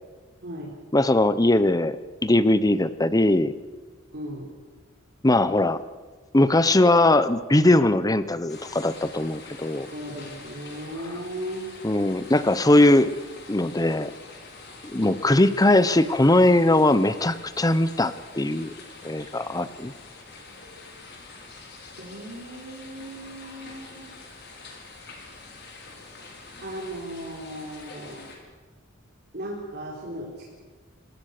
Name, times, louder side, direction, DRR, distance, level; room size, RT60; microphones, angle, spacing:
voice 1, 0.9-2.0 2.2-3.5 5.2-5.8 6.3-9.9 11.0-11.2 11.8-13.1 13.5-14.1 14.8-18.7 19.0-19.9, left 1 dB, 20° left, 14 dB, 0.9 m, -20 dB
voice 2, 4.1-4.4 9.9-11.7 22.0-24.1 26.6-28.2 29.3-30.5, right 1 dB, 55° right, -3 dB, 4.2 m, -36 dB
sound 1, 8.5-28.4, left 3 dB, 55° left, 4.9 m, -45 dB
26.0 x 20.0 x 6.7 m, 1.3 s
head